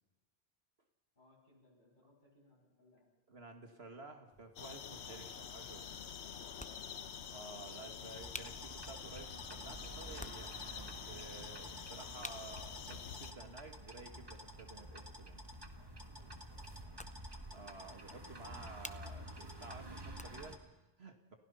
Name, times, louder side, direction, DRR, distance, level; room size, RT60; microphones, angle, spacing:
voice 1, 1.1-3.1 11.4-11.7 15.6-17.3 17.5-18.3, left 2 dB, 45° left, -3 dB, 7.7 m, -69 dB
voice 2, 3.3-6.0 7.3-15.4 17.5-21.4, right 3 dB, 70° right, 5 dB, 2.3 m, -53 dB
sound 1, 4.3-20.7, left 1 dB, 10° left, 0.5 m, -57 dB
sound 2, 4.6-13.3, left 7 dB, 85° left, 1.2 m, -47 dB
sound 3, 8.1-20.6, right 1 dB, 25° right, 1.5 m, -50 dB
29.5 x 16.0 x 5.7 m, 1.1 s
omnidirectional pair, 1.1 m